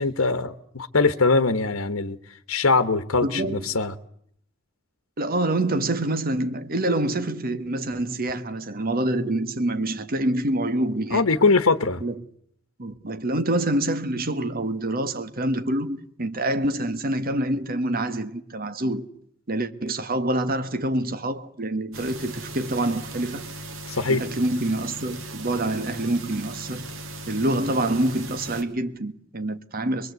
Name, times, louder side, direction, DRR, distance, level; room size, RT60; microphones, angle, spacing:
voice 1, 0.0-2.2 2.5-3.9 11.1-12.0 23.9-24.2, left 3 dB, 90° left, 1.2 m, -22 dB
voice 2, 3.2-3.8 5.2-11.3 12.0-12.2 12.8-19.1 19.5-23.5 24.1-26.8 27.3-30.1, right 1 dB, 45° right, 1.5 m, -26 dB
sound 1, 21.9-28.6, right 1 dB, 70° right, 2.9 m, -38 dB
23.5 x 22.5 x 8.1 m
head